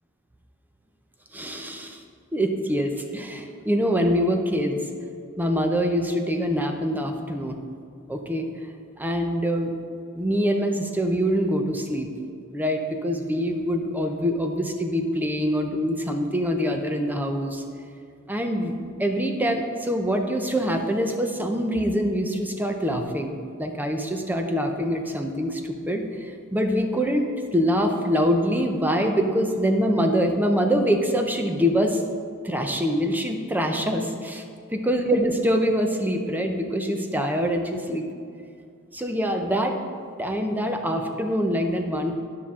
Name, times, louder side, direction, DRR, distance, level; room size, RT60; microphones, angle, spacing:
voice 1, 1.3-2.0 2.3-4.8 5.4-7.6 8.1-8.5 9.0-9.7 10.2-12.1 12.5-17.6 18.3-18.7 19.0-32.0 32.4-34.4 34.7-38.1 38.9-39.8 40.2-42.2, equal, 10° right, 4 dB, 0.6 m, -24 dB
11.5 x 5.7 x 3.7 m, 2.3 s
head